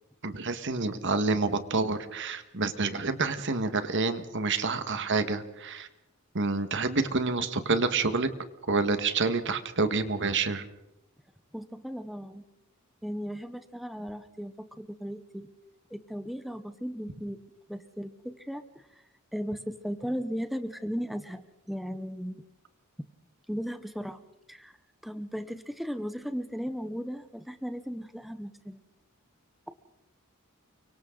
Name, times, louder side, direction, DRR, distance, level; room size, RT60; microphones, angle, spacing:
voice 1, 0.2-5.9 6.3-8.3 8.6-10.7, right 3 dB, 60° right, 10 dB, 1.7 m, -28 dB
voice 2, 11.5-12.4 13.0-15.5 15.9-17.4 17.7-19.0 19.3-22.4 23.5-24.2 24.5-24.7 25.0-28.8, equal, ahead, 9 dB, 0.9 m, -36 dB
30.0 x 24.5 x 3.9 m, 0.88 s
head